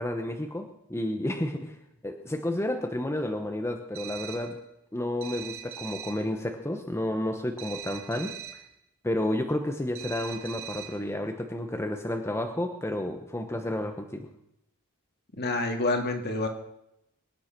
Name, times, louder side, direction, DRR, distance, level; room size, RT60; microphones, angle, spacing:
voice 1, 0.0-1.7 2.0-4.6 4.9-8.3 9.0-14.3, left 1 dB, 10° left, 4 dB, 1.0 m, -31 dB
sound 1, 3.9-4.6 5.2-6.3 7.6-8.7 9.9-11.1, right 10 dB, 65° right, 1.8 m, -41 dB
voice 2, 15.4-16.5, left 2 dB, 50° left, 4 dB, 2.3 m, -27 dB
23.5 x 9.6 x 6.1 m, 0.85 s
head